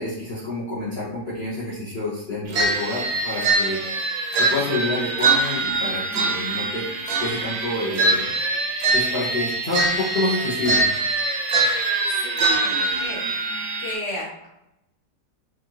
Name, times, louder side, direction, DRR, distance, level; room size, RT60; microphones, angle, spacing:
voice 1, 0.0-4.1 4.4-6.9 7.2-8.3 8.9-10.9, left 2 dB, 45° left, -9 dB, 0.9 m, -28 dB
sound 1, 2.5-13.9, right 3 dB, 70° right, 1.0 m, -23 dB
voice 2, 12.2-12.7 13.0-13.2 13.5-14.5, left 1 dB, 70° left, -6 dB, 2.0 m, -33 dB
4.5 x 2.6 x 2.9 m, 0.86 s
omnidirectional pair, 1.9 m